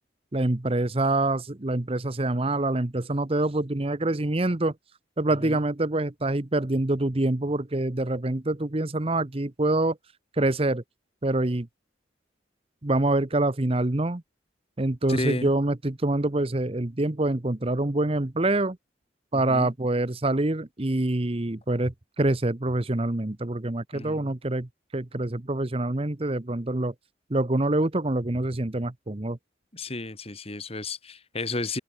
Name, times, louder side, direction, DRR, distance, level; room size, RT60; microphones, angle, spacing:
voice 1, 0.3-4.7 5.2-10.0 10.4-10.8 11.2-11.7 12.8-14.2 14.8-18.8 19.3-26.9 27.3-29.4, right 2 dB, 30° right, 0.9 m, -26 dB
voice 2, 15.1-15.5 19.3-19.7 23.9-24.3 29.7-31.8, left 2 dB, 30° left, 2.7 m, -32 dB
head